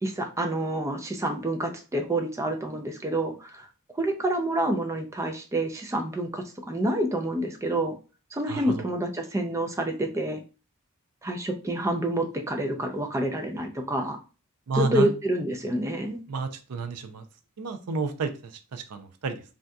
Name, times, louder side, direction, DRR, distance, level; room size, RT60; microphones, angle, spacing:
voice 1, 0.0-3.7 4.0-8.0 8.3-10.4 11.2-14.2 14.8-16.2, right 1 dB, 15° right, 4 dB, 0.4 m, -28 dB
voice 2, 8.5-8.9 14.7-15.1 16.3-17.2 17.6-19.4, right 4 dB, 90° right, 8 dB, 0.5 m, -31 dB
3.5 x 2.6 x 2.2 m, 0.34 s
head